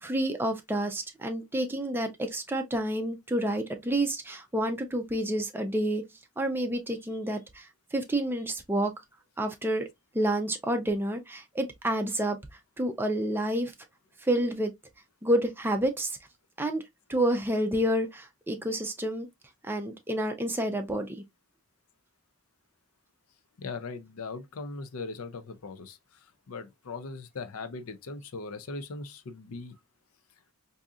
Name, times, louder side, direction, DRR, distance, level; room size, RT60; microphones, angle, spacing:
voice 1, 0.0-6.0 6.4-8.9 9.4-9.9 10.1-12.4 12.8-13.7 14.2-14.7 15.2-16.2 16.6-16.8 17.1-19.3 19.6-21.2, right 1 dB, 10° right, 0.5 m, -29 dB
voice 2, 23.6-29.7, left 3 dB, 90° left, 0.6 m, -39 dB
3.6 x 2.7 x 2.4 m
head